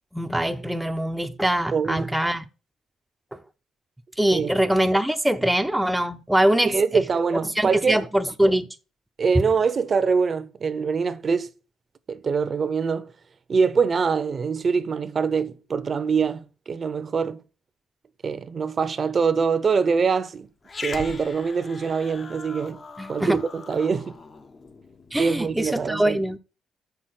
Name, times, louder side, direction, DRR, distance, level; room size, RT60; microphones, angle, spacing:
voice 1, 0.1-2.5 3.3-3.4 4.2-7.1 7.6-8.7 9.3-9.4 23.0-23.4 25.1-26.4, right 1 dB, 5° right, 0.6 m, -23 dB
voice 2, 1.7-2.1 4.3-4.5 6.6-8.0 9.2-11.5 12.1-13.1 13.5-17.4 18.2-20.5 20.8-22.8 23.1-24.2 25.2-26.2, right 5 dB, 40° right, 0.7 m, -24 dB
Growling, 20.6-25.3, left 4 dB, 35° left, 0.8 m, -39 dB
7.0 x 5.9 x 6.4 m
cardioid pair, 90°, 0 cm